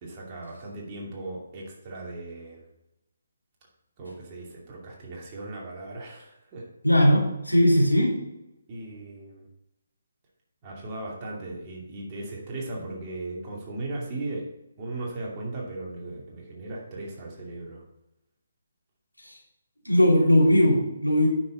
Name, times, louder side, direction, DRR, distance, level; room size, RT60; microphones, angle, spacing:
voice 1, 0.0-2.6 4.0-6.7 8.7-9.5 10.6-17.8, right 2 dB, 25° right, -3 dB, 2.5 m, -37 dB
voice 2, 6.8-8.2 19.2-19.3 19.8-21.3, equal, 90° left, -3 dB, 3.0 m, -19 dB
9.4 x 6.3 x 4.0 m, 0.91 s
figure-of-eight pair, 140°, 0 cm